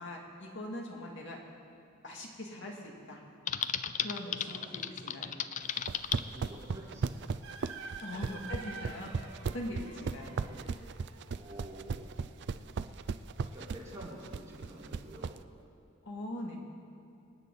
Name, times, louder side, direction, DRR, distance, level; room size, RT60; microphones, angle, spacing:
voice 1, 0.0-1.4 2.0-3.2 4.0-5.3 8.0-9.1 9.5-10.4 16.1-16.6, left 1 dB, 65° left, -1 dB, 2.3 m, -41 dB
Typing, 3.5-6.2, left 8 dB, 40° left, 0.4 m, -35 dB
voice 2, 4.4-4.8 6.2-7.4 8.1-8.3 10.3-10.7 11.3-12.0 12.5-12.8 13.4-15.4, right 1 dB, 15° right, -8 dB, 4.2 m, -49 dB
sound 1, 5.8-15.4, right 5 dB, 60° right, 0.4 m, -36 dB
sound 2, 7.4-15.6, right 4 dB, 85° right, 1.7 m, -50 dB
26.5 x 9.2 x 4.1 m, 2.7 s
head